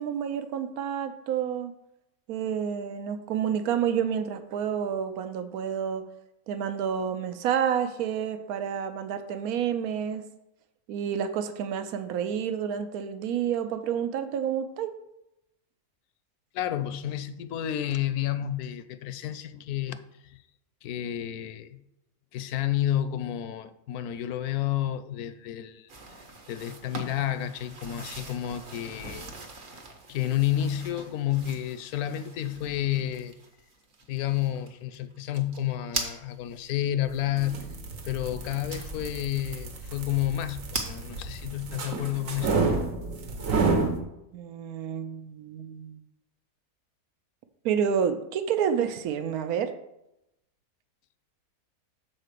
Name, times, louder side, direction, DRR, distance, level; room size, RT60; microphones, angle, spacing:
voice 1, 0.0-1.7 2.3-6.0 6.5-10.2 10.9-14.9 44.3-46.0 47.6-49.7, right 8 dB, 80° right, 1.1 m, -29 dB
voice 2, 16.5-20.4 20.8-21.8 22.3-25.9 26.5-29.3 30.1-33.3 34.1-37.7 38.0-42.6, left 12 dB, 80° left, 1.0 m, -30 dB
sound 1, 25.9-36.8 37.5-37.6 38.7-39.2 39.6-39.7 39.9-40.0 40.3-40.9, right 3 dB, 40° right, 1.0 m, -40 dB
sound 2, 37.2-44.0, right 3 dB, 60° right, 1.4 m, -30 dB
6.7 x 4.3 x 6.6 m
omnidirectional pair, 1.6 m